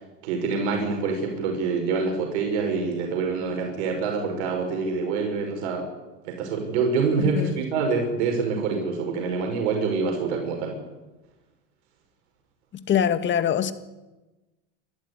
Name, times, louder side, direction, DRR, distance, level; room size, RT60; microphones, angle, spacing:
voice 1, 0.2-5.9 6.2-10.8, right 4 dB, 75° right, 6.0 m, -26 dB
voice 2, 12.7-13.7, left 8 dB, 35° left, 1.8 m, -23 dB
25.0 x 14.0 x 9.9 m
supercardioid pair, 120°, 34 cm